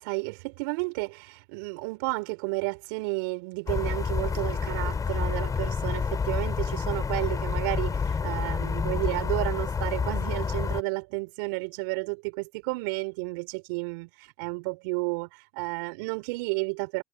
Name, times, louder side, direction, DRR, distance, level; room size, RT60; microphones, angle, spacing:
voice 1, 0.0-17.0, right 29 dB, 70° right, 3.6 m, -32 dB
sound 1, 3.7-10.8, left 5 dB, 30° left, 7.1 m, -28 dB
hypercardioid pair, 65°, 12 cm